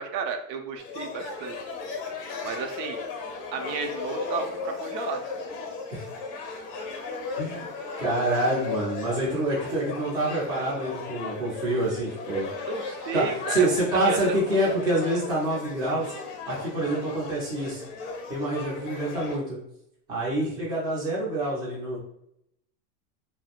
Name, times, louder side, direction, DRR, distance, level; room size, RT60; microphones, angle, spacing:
voice 1, 0.0-1.6 2.4-3.0 3.5-5.2 12.6-14.2, right 5 dB, 85° right, 4 dB, 0.6 m, -33 dB
sound 1, 0.8-19.4, left 4 dB, 40° left, 0.6 m, -36 dB
voice 2, 7.4-7.7 8.0-12.5 13.1-16.1 16.5-17.8 18.3-19.6 20.1-22.0, right 1 dB, 10° right, -6 dB, 0.3 m, -27 dB
2.3 x 2.0 x 2.8 m, 0.76 s
supercardioid pair, 135°, 50 cm